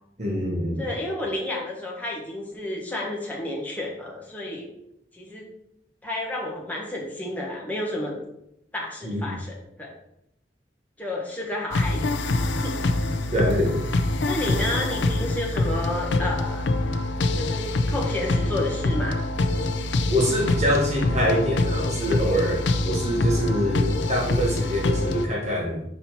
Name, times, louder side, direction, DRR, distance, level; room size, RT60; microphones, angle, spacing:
voice 1, 0.2-0.9 9.0-9.3 13.3-13.8 20.1-25.8, equal, 40° right, -3 dB, 1.5 m, -25 dB
voice 2, 0.8-4.7 5.1-5.4 6.0-8.1 8.7-9.9 11.0-12.2 12.6-12.8 14.2-16.7 17.3-19.2, left 1 dB, 10° left, -3 dB, 1.3 m, -31 dB
sound 1, 11.7-25.3, left 2 dB, 75° left, 0.5 m, -25 dB
5.5 x 4.2 x 4.3 m, 0.80 s
head